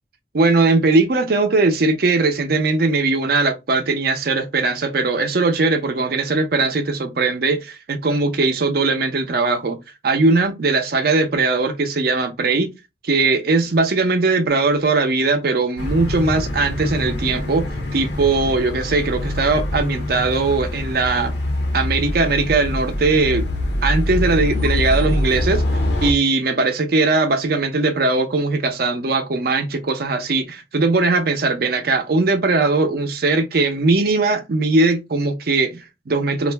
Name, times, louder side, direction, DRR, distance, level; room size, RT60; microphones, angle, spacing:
voice 1, 0.3-9.8 10.0-12.7 13.0-21.3 21.7-23.5 23.8-25.6 26.0-36.5, right 3 dB, 50° right, 0.5 m, -19 dB
sound 1, 15.8-26.1, left 1 dB, 60° left, 0.6 m, -24 dB
2.4 x 2.1 x 3.2 m
head